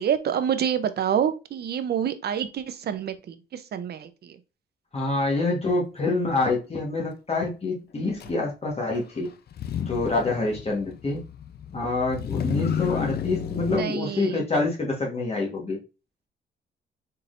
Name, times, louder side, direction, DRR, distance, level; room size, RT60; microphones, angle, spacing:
voice 1, 0.0-4.4 8.3-8.4 13.7-14.4, right 8 dB, 55° right, 10 dB, 0.7 m, -27 dB
voice 2, 4.9-9.3 9.9-11.2 11.7-15.8, left 3 dB, 30° left, -2 dB, 1.4 m, -26 dB
Motor vehicle (road), 8.2-8.3 9.5-13.8, left 8 dB, 55° left, 0.6 m, -31 dB
4.3 x 3.8 x 2.6 m, 0.29 s
cardioid pair, 90°, 20 cm